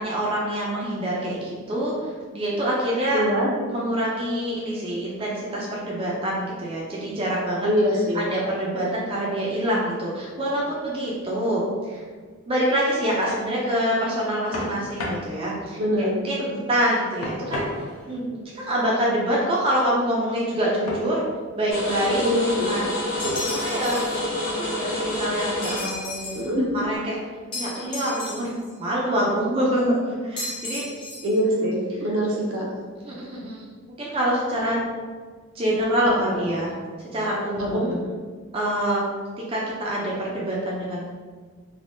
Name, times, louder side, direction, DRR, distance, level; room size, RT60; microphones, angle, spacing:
voice 1, 0.0-3.2 3.7-7.7 8.1-12.0 12.5-17.6 18.1-18.2 18.5-21.2 21.6-22.2 22.7-23.0 23.5-24.0 24.6-26.4 26.7-27.2 27.5-30.8 33.0-33.6 34.0-34.8 35.5-36.7 37.0-38.0 38.5-39.0 39.5-41.1, right 1 dB, 25° right, -5 dB, 0.4 m, -26 dB
voice 2, 3.1-3.5 7.6-8.2 15.8-16.2 16.5-16.6 22.2-22.8 26.3-26.7 31.2-32.7 36.2-36.3 37.6-37.8, equal, 75° right, -2 dB, 0.7 m, -23 dB
sound 1, 12.9-13.5 14.5-15.3 17.2-18.2 20.9-21.1 21.8-22.3 23.2-23.7, left 1 dB, 80° left, 0.5 m, -32 dB
sound 2, 21.7-26.9, left 1 dB, 45° left, 0.9 m, -28 dB
sound 3, 23.2-24.2 25.6-26.5 27.5-28.7 30.4-31.4, left 2 dB, 25° left, 0.6 m, -34 dB
3.3 x 2.2 x 2.5 m, 1.5 s
head